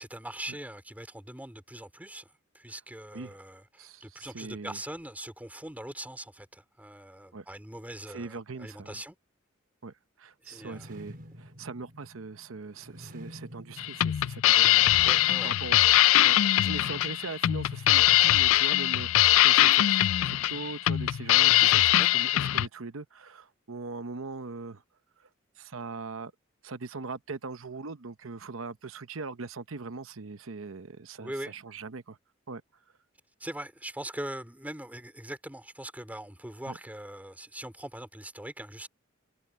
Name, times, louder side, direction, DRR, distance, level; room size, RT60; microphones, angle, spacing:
voice 1, 0.0-9.2 10.4-10.9 15.0-15.6 21.6-21.7 22.0-22.1 31.2-31.5 33.4-38.9, right 1 dB, 10° right, 3.9 m, -41 dB
voice 2, 3.8-4.8 7.3-7.5 8.1-9.0 9.8-14.9 15.4-24.8 25.2-25.3 25.6-26.3 26.6-32.2 32.5-32.6 36.7-36.8, right 4 dB, 70° right, 0.8 m, -41 dB
sound 1, 10.5-16.6, equal, 45° right, 4.7 m, -49 dB
sound 2, 13.8-22.7, left 14 dB, 75° left, 0.4 m, -22 dB
head